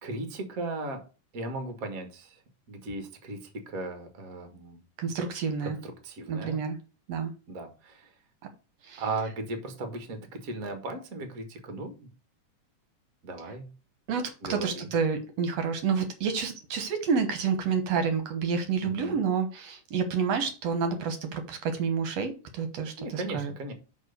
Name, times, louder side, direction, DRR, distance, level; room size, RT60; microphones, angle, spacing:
voice 1, 0.0-1.0 1.3-2.4 2.7-4.8 5.6-6.6 7.5-8.1 9.0-12.0 13.2-13.7 14.4-14.9 18.8-19.2 23.0-23.7, right 2 dB, 40° right, 6 dB, 1.2 m, -37 dB
voice 2, 5.0-5.8 6.3-6.8 7.1-7.3 8.8-9.0 14.1-23.5, right 6 dB, 65° right, 7 dB, 1.9 m, -29 dB
6.4 x 4.6 x 6.6 m, 0.34 s
omnidirectional pair, 3.8 m